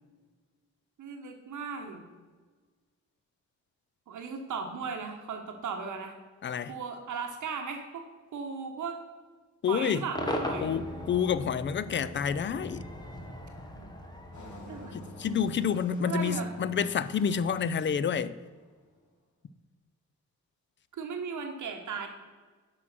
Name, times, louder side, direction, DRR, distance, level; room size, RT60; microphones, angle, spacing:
voice 1, 1.0-2.1 4.1-6.1 6.7-8.0 8.3-9.0 9.7-10.7 13.7-13.9 14.7-14.9 16.0-16.5 20.9-22.1, right 5 dB, 75° right, 1.2 m, -37 dB
voice 2, 6.4-6.7 9.6-10.0 10.6-12.8 14.9-18.3, left 7 dB, 40° left, 0.4 m, -29 dB
Cheering / Crowd / Fireworks, 10.1-15.4, left 1 dB, 15° left, 1.1 m, -38 dB
Engine, 14.3-18.8, left 1 dB, 70° left, 3.0 m, -49 dB
9.7 x 6.0 x 5.9 m
wide cardioid pair, 175°, 30 cm